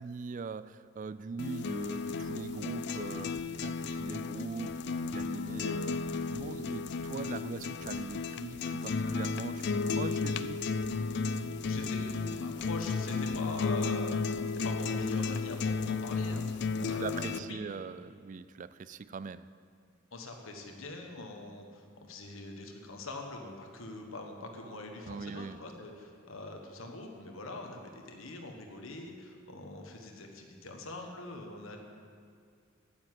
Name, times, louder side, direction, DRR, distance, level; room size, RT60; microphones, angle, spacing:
voice 1, 0.0-10.6 16.8-19.5 25.1-25.6, right 4 dB, 35° right, 15 dB, 0.3 m, -41 dB
sound 1, 1.4-17.4, left 4 dB, 55° left, 0.4 m, -33 dB
voice 2, 11.7-14.2 14.5-17.6 20.1-31.8, left 2 dB, 70° left, 3 dB, 1.5 m, -43 dB
10.5 x 9.6 x 7.6 m, 2.2 s
head